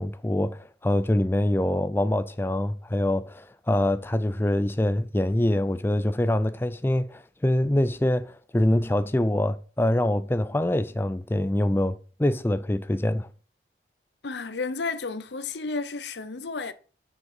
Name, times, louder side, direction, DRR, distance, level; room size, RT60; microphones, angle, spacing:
voice 1, 0.0-13.3, left 1 dB, 15° left, 0.4 m, -25 dB
voice 2, 14.2-16.7, left 4 dB, 85° left, 0.8 m, -32 dB
7.3 x 6.6 x 5.4 m
head